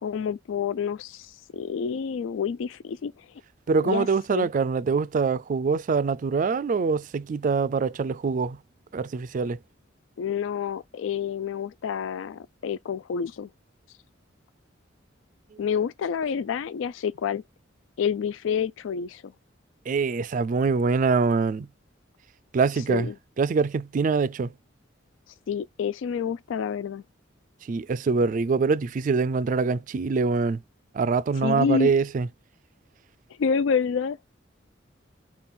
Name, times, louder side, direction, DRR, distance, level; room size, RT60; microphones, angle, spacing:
voice 1, 0.0-3.1 3.8-4.5 10.2-13.5 15.6-17.4 18.0-19.2 22.9-23.1 25.5-27.0 31.4-31.9 33.4-34.2, left 6 dB, 80° left, 0.3 m, -28 dB
voice 2, 3.7-8.6 8.9-9.6 15.5-15.6 19.9-21.7 22.5-23.1 23.4-24.5 27.6-30.6 30.9-32.3, right 4 dB, 40° right, 0.3 m, -24 dB
5.4 x 2.3 x 4.2 m
head